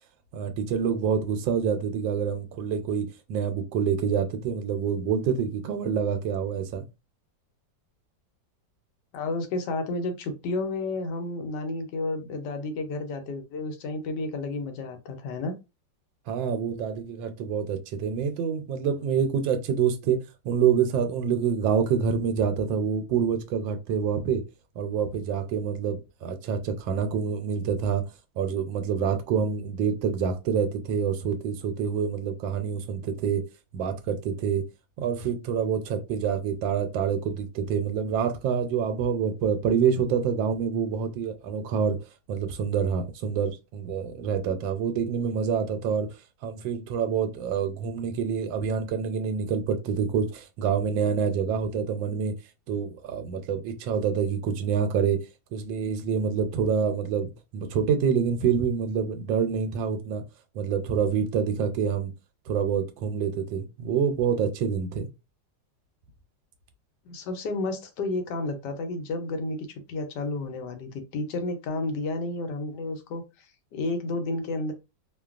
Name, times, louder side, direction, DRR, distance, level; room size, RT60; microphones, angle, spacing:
voice 1, 0.3-6.8 16.3-20.2 20.4-24.4 24.8-28.0 28.4-33.4 33.7-34.6 35.0-42.0 42.3-46.1 46.4-52.3 52.7-55.2 55.5-60.2 60.5-62.1 62.5-65.1, right 7 dB, 85° right, 1.3 m, -27 dB
voice 2, 9.1-15.5 67.0-73.5 73.7-74.7, left 2 dB, 75° left, 1.2 m, -31 dB
3.0 x 2.2 x 2.3 m
omnidirectional pair, 2.0 m